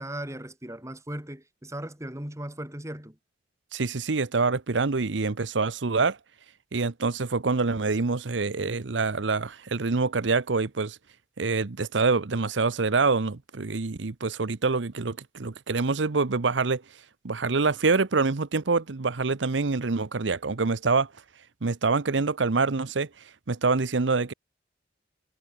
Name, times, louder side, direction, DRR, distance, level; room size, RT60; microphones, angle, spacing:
voice 1, 0.0-3.2, right 1 dB, 15° right, 3.2 m, -37 dB
voice 2, 3.7-6.2 6.7-11.0 11.4-16.8 17.2-21.1 21.6-24.3, right 4 dB, 85° right, 0.9 m, -26 dB
head